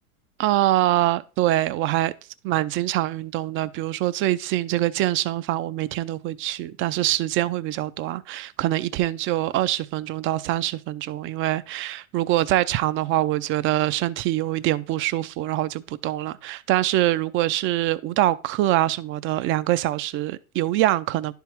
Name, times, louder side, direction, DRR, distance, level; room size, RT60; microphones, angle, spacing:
voice 1, 0.4-2.1 2.4-21.3, right 15 dB, 30° right, 0.4 m, -24 dB
11.0 x 3.6 x 4.3 m
hypercardioid pair, 95°, 41 cm